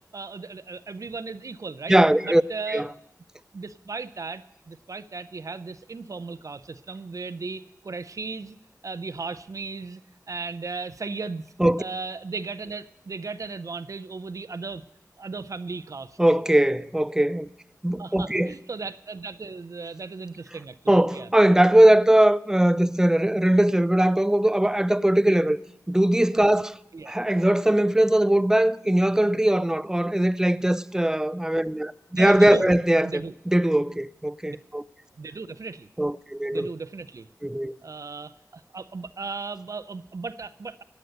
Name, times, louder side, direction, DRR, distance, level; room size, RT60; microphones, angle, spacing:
voice 1, 0.1-2.0 2.2-2.8 3.5-8.6 8.8-10.0 10.3-11.4 11.8-14.8 15.2-16.2 18.0-21.3 26.9-27.2 32.1-32.6 33.0-33.3 34.5-34.6 35.2-35.9 36.5-37.3 37.8-40.8, right 4 dB, 60° right, 0.5 m, -36 dB
voice 2, 1.9-2.4 2.7-2.9 11.6-11.8 16.2-17.5 17.8-18.5 20.9-25.6 25.9-26.8 27.1-34.8 36.0-36.7 37.4-37.8, right 1 dB, 10° right, 0.4 m, -20 dB
17.0 x 9.2 x 6.6 m
wide cardioid pair, 70°, 6 cm